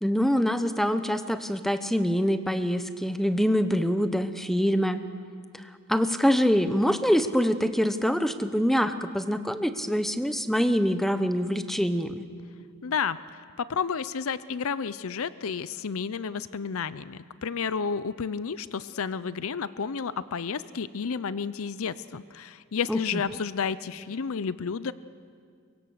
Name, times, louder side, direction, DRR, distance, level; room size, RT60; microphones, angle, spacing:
voice 1, 0.0-5.0 5.9-12.2 22.9-23.0, equal, ahead, 10 dB, 0.9 m, -25 dB
voice 2, 12.8-24.9, left 6 dB, 70° left, 16 dB, 0.6 m, -31 dB
24.0 x 22.5 x 6.5 m, 2.1 s
head